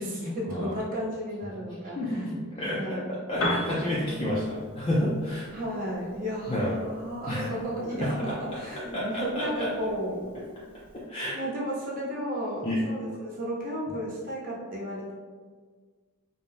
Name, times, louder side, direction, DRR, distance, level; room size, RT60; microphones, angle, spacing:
voice 1, 0.0-2.2 2.6-3.1 5.5-10.2 11.3-15.1, equal, 40° right, -4 dB, 0.7 m, -33 dB
voice 2, 1.9-3.0 3.3-5.5 6.5-6.7 7.3-7.5 7.9-8.1 8.5-8.6 8.9-9.7 11.1-11.3 12.6-12.8, left 1 dB, 25° left, -8 dB, 0.4 m, -30 dB
Piano, 3.3-11.1, left 1 dB, 75° left, 0.7 m, -39 dB
2.6 x 2.1 x 3.3 m, 1.5 s
head